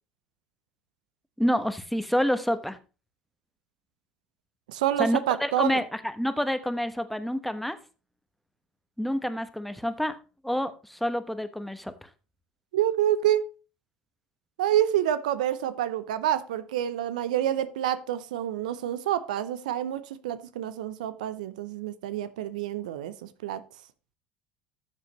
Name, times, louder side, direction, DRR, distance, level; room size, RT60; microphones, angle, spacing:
voice 1, 1.4-2.8 5.0-5.9 6.2-7.8 9.0-10.2 10.4-12.1, equal, ahead, 11 dB, 1.1 m, -28 dB
voice 2, 4.7-5.8 12.7-13.5 14.6-23.6, right 11 dB, 75° right, 14 dB, 0.6 m, -28 dB
12.5 x 7.5 x 3.0 m, 0.33 s
hypercardioid pair, 65°, 4 cm